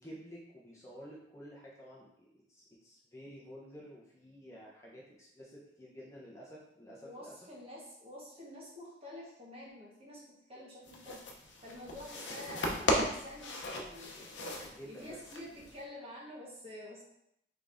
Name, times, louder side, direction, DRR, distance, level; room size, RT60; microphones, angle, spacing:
voice 1, 0.0-7.3 14.6-15.2, equal, 15° left, -5 dB, 0.9 m, -51 dB
voice 2, 7.0-14.3 14.8-17.0, left 1 dB, 30° right, -5 dB, 1.4 m, -49 dB
sound 1, 10.9-15.8, left 1 dB, 70° left, 0.7 m, -36 dB
5.3 x 3.6 x 2.6 m, 0.78 s
head